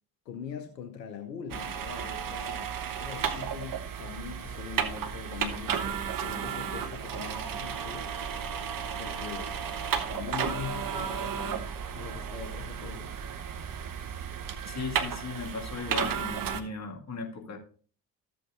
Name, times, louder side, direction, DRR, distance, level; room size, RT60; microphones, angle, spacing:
voice 1, 0.3-8.4 8.7-9.6 10.1-11.7 11.9-13.1, left 8 dB, 85° left, 6 dB, 0.8 m, -42 dB
sound 1, 1.5-16.6, right 7 dB, 40° right, 1.1 m, -33 dB
voice 2, 14.7-17.6, left 4 dB, 35° left, 2 dB, 2.0 m, -37 dB
13.5 x 7.6 x 2.6 m, 0.43 s
figure-of-eight pair, 45°, 49 cm